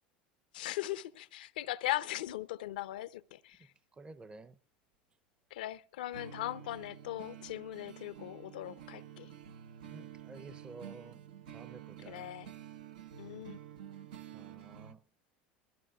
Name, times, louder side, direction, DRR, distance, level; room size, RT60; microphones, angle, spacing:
voice 1, 0.5-3.6 5.5-9.3 12.1-12.5 13.2-13.6, left 15 dB, 80° left, 0.6 m, -39 dB
voice 2, 3.9-4.6 9.9-11.2 11.5-12.3 14.3-15.0, right 3 dB, 20° right, 0.7 m, -51 dB
sound 1, 6.1-14.9, right 10 dB, 80° right, 0.9 m, -50 dB
21.0 x 14.0 x 2.4 m
hypercardioid pair, 85°, 5 cm